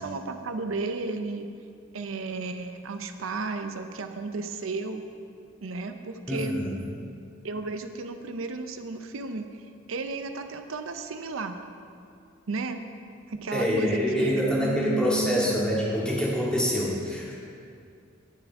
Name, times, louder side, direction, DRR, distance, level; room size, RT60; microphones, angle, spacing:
voice 1, 0.0-1.5 1.9-5.0 5.6-6.5 7.4-9.6 9.9-11.6 12.5-12.8 13.3-15.6, right 3 dB, 85° right, 7 dB, 0.6 m, -33 dB
voice 2, 6.3-6.8 13.5-17.3, equal, 5° left, -6 dB, 2.1 m, -26 dB
18.5 x 6.9 x 3.6 m, 2.4 s
head